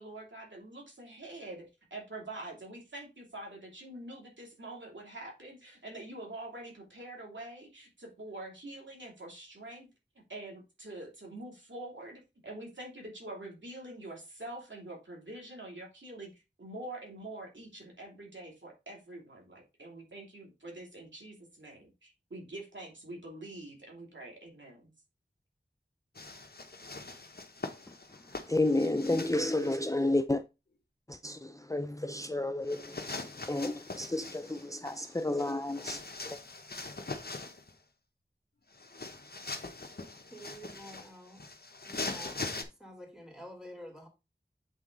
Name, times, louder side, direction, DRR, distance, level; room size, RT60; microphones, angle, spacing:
voice 1, 0.0-9.9 10.3-24.9, right 2 dB, 80° right, 2.7 m, -45 dB
sound 1, 26.1-29.9 32.7-37.7 38.7-42.6, left 3 dB, 55° left, 1.0 m, -42 dB
voice 2, 28.5-30.4 31.1-36.4, left 2 dB, 15° left, 0.5 m, -31 dB
voice 3, 40.3-41.4 41.8-42.5 42.8-44.1, equal, 5° right, 3.1 m, -48 dB
8.0 x 4.1 x 3.8 m
wide cardioid pair, 45°, 19 cm